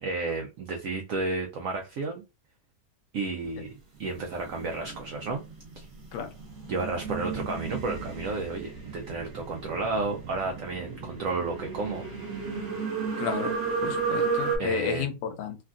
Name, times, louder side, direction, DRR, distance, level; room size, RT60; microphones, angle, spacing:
voice 1, 0.0-2.2 3.1-3.7 4.0-5.4 5.8-5.9 6.7-12.1 14.6-15.1, right 3 dB, 85° right, 0.7 m, -32 dB
sound 1, 4.1-14.6, right 5 dB, 45° right, 1.4 m, -34 dB
voice 2, 13.2-13.5 13.8-15.6, left 7 dB, 75° left, 1.2 m, -31 dB
3.4 x 2.3 x 2.4 m
omnidirectional pair, 2.0 m